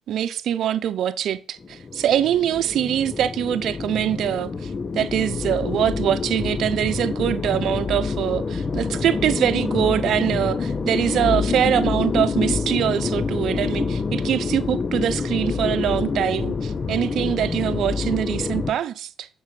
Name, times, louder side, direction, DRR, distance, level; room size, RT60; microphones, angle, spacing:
voice 1, 0.1-4.7 4.9-19.3, right 10 dB, 75° right, 0.7 m, -23 dB
sound 1, 1.6-18.7, left 4 dB, 35° left, 0.7 m, -27 dB
7.4 x 6.2 x 7.5 m
cardioid pair, 90°, 0 cm